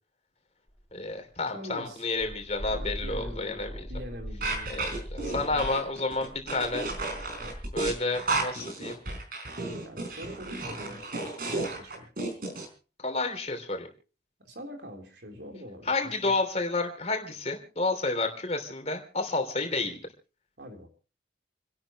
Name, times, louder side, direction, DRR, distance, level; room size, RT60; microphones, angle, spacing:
sound 1, 0.7-1.1 1.8-1.9 2.2-8.0, equal, 5° right, 7.2 m, -40 dB
voice 1, 0.9-3.9 4.7-6.9 7.7-9.0 13.0-13.9 15.9-20.0, left 3 dB, 35° left, 6 dB, 3.0 m, -30 dB
voice 2, 1.5-2.0 2.7-5.7 7.4-7.5 9.8-12.1 14.4-16.3 20.6-20.9, equal, 70° right, 2 dB, 3.7 m, -44 dB
sound 2, 4.4-12.7, right 3 dB, 50° right, 4.5 m, -33 dB
29.5 x 12.0 x 3.0 m, 0.36 s
head